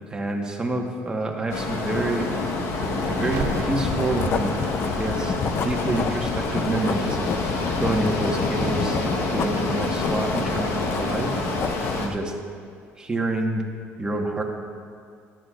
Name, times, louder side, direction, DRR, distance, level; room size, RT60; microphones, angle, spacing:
voice 1, 0.1-2.3 3.1-4.5 4.8-5.4 5.6-7.3 7.8-11.3 12.0-12.3 13.0-13.6 14.0-14.4, right 2 dB, 15° right, 1 dB, 1.2 m, -27 dB
sound 1, 1.5-12.1, left 2 dB, 70° left, 1.1 m, -27 dB
Writing, 2.7-12.1, left 6 dB, 45° left, 0.5 m, -30 dB
Crackle, 3.3-9.4, right 5 dB, 65° right, 1.2 m, -40 dB
13.5 x 11.5 x 2.4 m, 2.3 s
cardioid pair, 120°, 5 cm